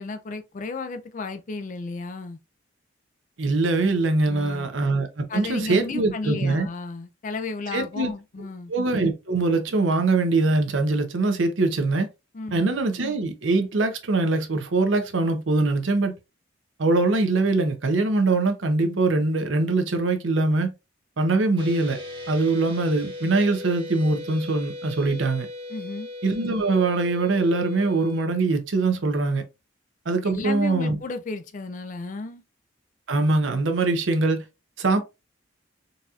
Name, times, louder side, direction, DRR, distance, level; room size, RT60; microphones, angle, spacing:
voice 1, 0.0-2.4 4.3-4.7 5.3-8.7 12.3-12.6 25.7-26.1 30.2-32.4, left 3 dB, 40° left, 0.4 m, -33 dB
voice 2, 3.4-6.7 7.7-8.1 8.7-12.1 12.5-16.1 16.8-20.7 21.2-22.0 22.3-25.5 26.2-29.4 30.1-31.0 33.1-34.4 34.8-35.0, right 3 dB, 75° right, 0.7 m, -23 dB
sound 1, 21.6-28.3, left 2 dB, 25° right, 1.1 m, -38 dB
4.0 x 2.8 x 2.4 m
head